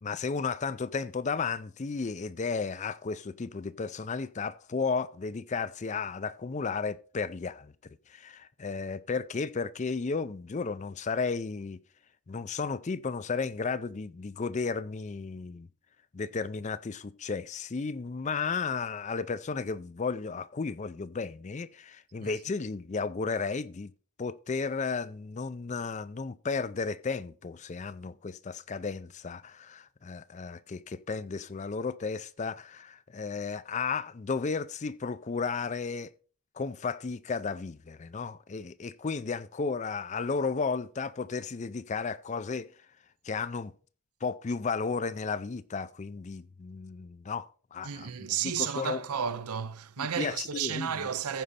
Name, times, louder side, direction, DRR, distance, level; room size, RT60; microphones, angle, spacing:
voice 1, 0.0-7.7 8.1-11.8 12.3-15.7 16.1-23.9 24.2-36.1 36.6-42.7 43.2-43.7 44.2-49.0 50.0-51.1, left 4 dB, 30° left, 0.4 m, -34 dB
voice 2, 47.8-51.4, right 8 dB, 85° right, 0.7 m, -32 dB
15.0 x 5.2 x 4.2 m
head